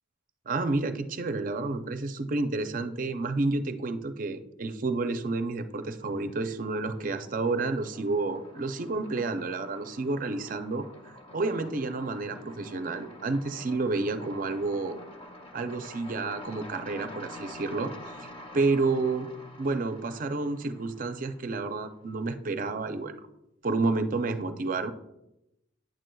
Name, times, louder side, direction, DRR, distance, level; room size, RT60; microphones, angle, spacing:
voice 1, 0.5-10.9 11.3-15.0 15.5-17.9 18.2-18.3 18.5-19.3 19.6-23.1 23.6-24.9, right 3 dB, 45° right, 9 dB, 0.5 m, -30 dB
sound 1, 5.6-6.3 6.6-21.8, left 1 dB, 30° left, 0.6 m, -47 dB
9.0 x 7.7 x 2.3 m, 0.87 s
head